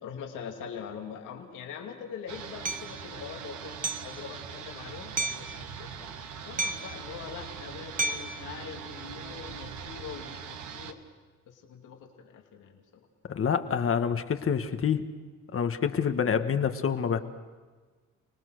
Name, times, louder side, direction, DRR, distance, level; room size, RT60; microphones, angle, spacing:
voice 1, 0.0-11.0 11.5-13.1, left 7 dB, 85° left, 1 dB, 2.6 m, -43 dB
sound 1, 2.3-10.9, right 7 dB, 75° right, 1.7 m, -42 dB
Hammer, 2.6-2.9 3.8-4.1 5.2-5.5 6.6-7.0 8.0-8.4, right 3 dB, 25° right, 1.3 m, -31 dB
voice 2, 13.3-15.1 15.5-17.2, left 7 dB, 45° left, 8 dB, 1.6 m, -27 dB
30.0 x 19.0 x 6.5 m, 1.4 s
cardioid pair, 90°, 30 cm